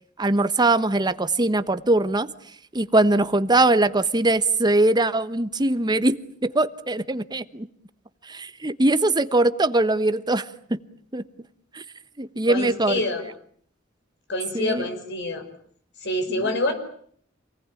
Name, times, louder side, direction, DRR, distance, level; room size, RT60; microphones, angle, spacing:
voice 1, 0.2-2.3 2.7-6.2 6.4-7.7 8.3-10.8 11.1-11.2 11.7-11.8 12.2-13.0 14.5-14.9 16.3-16.5, right 2 dB, 20° right, 13 dB, 1.2 m, -21 dB
voice 2, 12.5-13.2 14.3-15.4 16.0-16.7, left 1 dB, 60° left, 7 dB, 5.7 m, -26 dB
27.5 x 19.0 x 9.8 m, 0.63 s
head